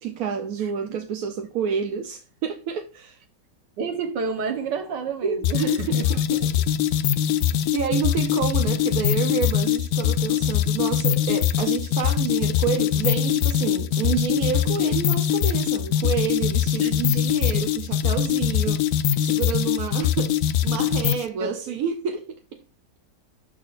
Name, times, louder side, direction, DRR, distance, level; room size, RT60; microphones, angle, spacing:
voice 1, 0.0-3.2 5.2-6.4 7.7-18.8 19.2-20.4 20.6-22.6, right 7 dB, 60° right, 1.1 m, -29 dB
voice 2, 0.6-1.0 3.8-6.1 16.8-16.9 21.4-21.8, right 5 dB, 80° right, 1.8 m, -30 dB
sound 1, 5.4-21.3, left 10 dB, 70° left, 1.0 m, -22 dB
12.0 x 4.1 x 2.5 m
omnidirectional pair, 1.9 m